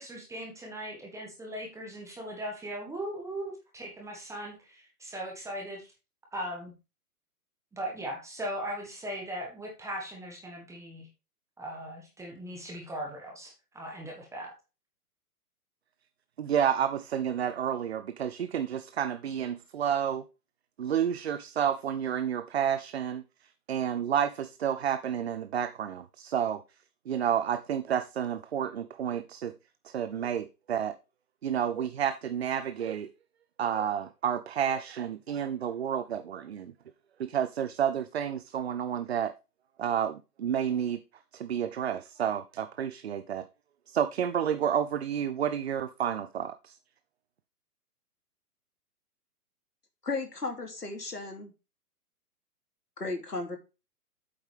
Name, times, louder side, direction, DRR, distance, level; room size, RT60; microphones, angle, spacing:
voice 1, 0.0-5.9 6.3-6.7 7.7-11.1 11.6-14.5, right 1 dB, 5° right, 1.6 m, -39 dB
voice 2, 16.4-20.2 20.8-23.2 23.7-26.6 27.1-29.5 29.8-30.9 31.4-33.1 33.6-36.7 37.2-39.3 39.8-41.0 41.3-43.5 43.9-46.8, right 9 dB, 45° right, 0.6 m, -30 dB
voice 3, 50.0-51.5 53.0-53.6, left 3 dB, 80° left, 3.1 m, -35 dB
8.5 x 8.0 x 3.5 m
figure-of-eight pair, 120°, 46 cm